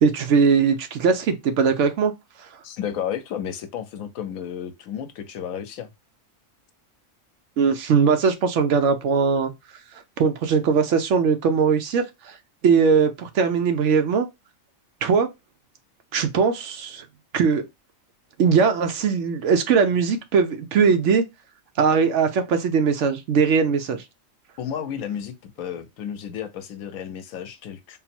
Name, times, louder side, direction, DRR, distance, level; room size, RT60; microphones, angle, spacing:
voice 1, 0.0-2.1 7.6-9.5 10.2-12.4 12.6-14.3 15.0-15.3 16.1-17.0 17.3-17.6 18.4-21.2 21.8-24.0, right 5 dB, 65° right, 0.9 m, -20 dB
voice 2, 2.6-5.9 24.6-28.0, left 9 dB, 85° left, 1.1 m, -32 dB
3.8 x 2.0 x 4.3 m
omnidirectional pair, 1.4 m